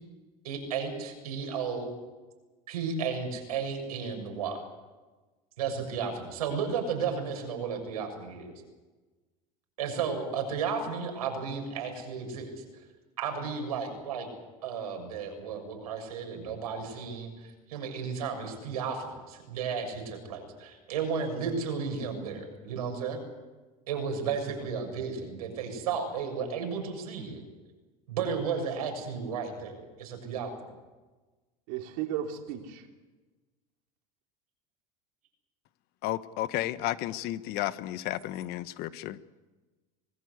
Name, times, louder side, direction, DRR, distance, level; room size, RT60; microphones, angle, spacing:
voice 1, 0.4-1.9 2.7-4.6 5.6-8.5 9.8-12.6 13.2-14.3 14.6-23.2 23.9-27.4 28.1-30.5, right 6 dB, 90° right, 4 dB, 6.7 m, -33 dB
voice 2, 31.7-32.8, right 10 dB, 70° right, 3 dB, 3.7 m, -34 dB
voice 3, 36.0-39.2, left 14 dB, 60° left, 13 dB, 1.2 m, -32 dB
25.0 x 18.0 x 8.3 m, 1.2 s
supercardioid pair, 100°, 19 cm